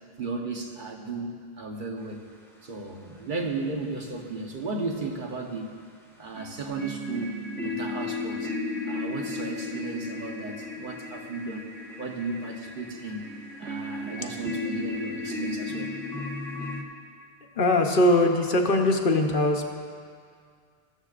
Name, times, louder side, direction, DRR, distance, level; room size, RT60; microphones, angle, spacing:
voice 1, 0.2-2.2 2.6-5.7 6.2-8.5 8.8-11.7 12.0-13.3 13.6-15.9, right 3 dB, 55° right, 1 dB, 1.1 m, -34 dB
sound 1, 6.3-16.8, left 2 dB, 5° left, 1.1 m, -34 dB
voice 2, 17.6-19.7, left 1 dB, 60° left, 3 dB, 1.0 m, -21 dB
15.0 x 13.0 x 2.4 m, 2.1 s
omnidirectional pair, 1.0 m